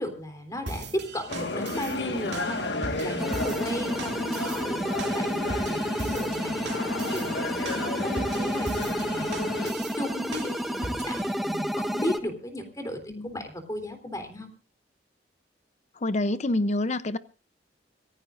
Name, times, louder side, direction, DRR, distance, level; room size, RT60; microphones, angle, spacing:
voice 1, 0.0-6.5 6.9-9.3 9.6-14.5, left 1 dB, 20° left, 3.5 m, -35 dB
sound 1, 0.7-11.3, right 3 dB, 75° right, 2.6 m, -40 dB
sound 2, 1.3-9.7, left 2 dB, 75° left, 1.7 m, -33 dB
sound 3, 3.2-12.2, equal, ahead, 1.2 m, -30 dB
voice 2, 16.0-17.2, left 1 dB, 40° left, 0.7 m, -27 dB
26.0 x 16.0 x 2.6 m
head